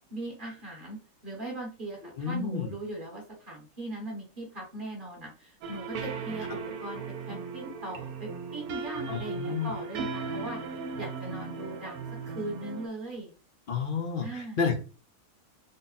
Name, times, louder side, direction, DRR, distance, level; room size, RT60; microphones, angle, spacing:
voice 1, 0.1-7.0 7.3-10.6 10.9-13.3 14.2-14.6, right 2 dB, 40° right, -2 dB, 1.3 m, -39 dB
voice 2, 2.2-2.7 9.1-9.7 13.7-14.8, left 5 dB, 55° left, 4 dB, 0.6 m, -30 dB
sound 1, 5.6-12.9, right 4 dB, 85° right, 1.1 m, -37 dB
3.6 x 2.1 x 4.0 m, 0.34 s
omnidirectional pair, 1.5 m